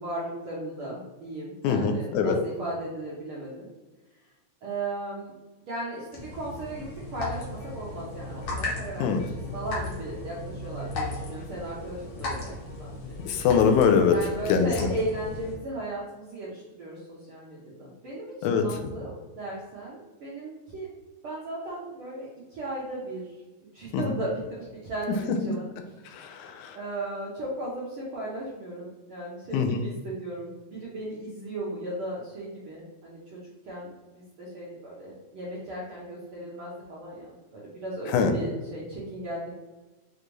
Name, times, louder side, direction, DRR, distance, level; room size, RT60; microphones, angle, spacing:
voice 1, 0.0-3.7 4.6-5.3 5.6-6.9 7.1-13.1 14.1-20.9 21.2-23.4 23.7-25.7 26.1-39.6, right 1 dB, 75° right, -6 dB, 1.2 m, -36 dB
voice 2, 1.6-2.4 9.0-9.2 13.3-14.2 14.5-14.7 18.4-18.6 23.9-24.0 26.1-26.8 29.5-29.8 38.1-38.3, left 6 dB, 85° left, 5 dB, 2.0 m, -23 dB
sound 1, 6.1-15.6, left 2 dB, 65° left, 2.3 m, -36 dB
6.4 x 2.6 x 3.0 m, 1.2 s
omnidirectional pair, 3.5 m